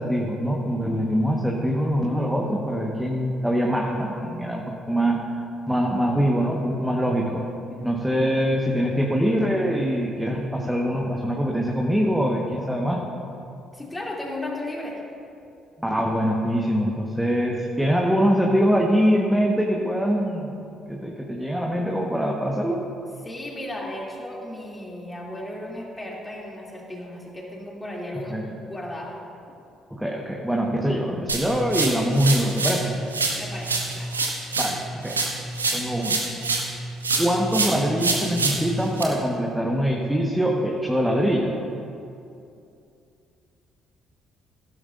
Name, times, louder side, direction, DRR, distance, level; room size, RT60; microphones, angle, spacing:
voice 1, 0.0-5.2 5.7-7.5 7.8-13.0 15.8-20.5 20.9-22.8 28.3-28.4 29.9-32.9 34.6-35.2 35.7-36.2 37.2-41.5, equal, 5° right, -1 dB, 1.4 m, -23 dB
voice 2, 7.7-8.3 13.7-15.0 23.2-29.2 33.4-34.1, left 1 dB, 20° left, -2 dB, 2.8 m, -35 dB
sound 1, 31.3-32.8 33.1-36.7 37.0-39.0, right 3 dB, 90° right, 0.9 m, -26 dB
16.0 x 12.0 x 2.6 m, 2.6 s
figure-of-eight pair, 45°, 0 cm